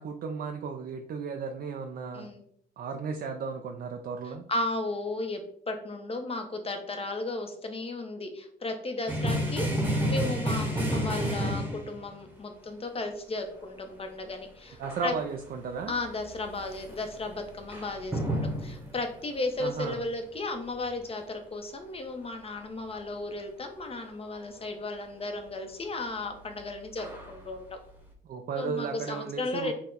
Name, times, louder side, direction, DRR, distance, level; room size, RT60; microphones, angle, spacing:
voice 1, 0.0-2.3 2.8-4.4 10.8-11.0 14.8-15.9 19.6-20.0 28.3-29.7, right 5 dB, 50° right, 4 dB, 0.5 m, -35 dB
voice 2, 4.5-15.1 15.9-27.8 28.5-29.7, left 2 dB, 30° left, 5 dB, 0.9 m, -35 dB
sound 1, 9.1-12.1 14.8-15.5 15.8-19.0 26.3-27.5 28.1-28.2, equal, 10° right, 1.1 m, -31 dB
5.7 x 2.2 x 3.9 m, 0.63 s
cardioid pair, 90°, 20 cm